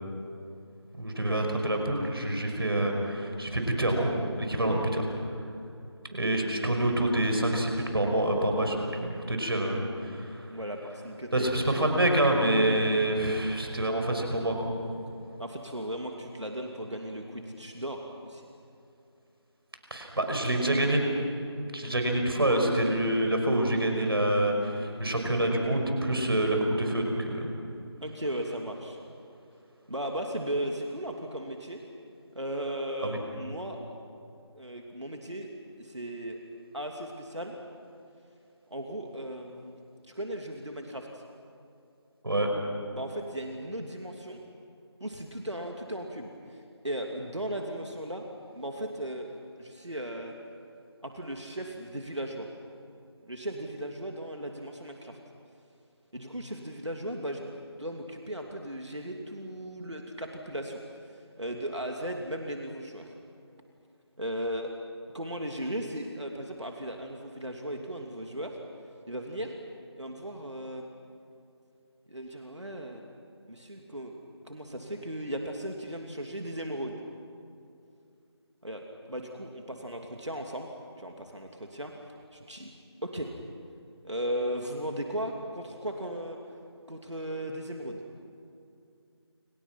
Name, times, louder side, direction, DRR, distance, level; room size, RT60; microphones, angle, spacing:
voice 1, 1.0-4.7 6.1-10.5 11.3-14.7 19.9-21.1 21.7-27.5 33.0-33.2 42.2-42.5, right 1 dB, 55° right, 3 dB, 5.7 m, -27 dB
voice 2, 10.5-11.7 15.4-18.4 28.0-29.0 29.9-31.8 32.3-33.8 34.5-35.5 35.8-36.4 36.7-37.6 38.7-39.8 40.1-41.2 42.9-44.4 45.0-48.3 48.5-49.3 49.6-50.3 51.0-52.5 53.2-55.2 56.1-57.5 57.8-60.8 61.1-63.1 64.2-64.7 65.1-68.6 69.1-69.5 70.0-70.9 72.1-73.0 73.5-74.2 74.4-77.0 78.6-80.7 81.0-82.7 83.0-83.3 84.0-86.4 86.9-88.0, right 1 dB, 85° right, 2 dB, 2.9 m, -36 dB
29.0 x 27.0 x 6.0 m, 2.5 s
figure-of-eight pair, 165°, 15 cm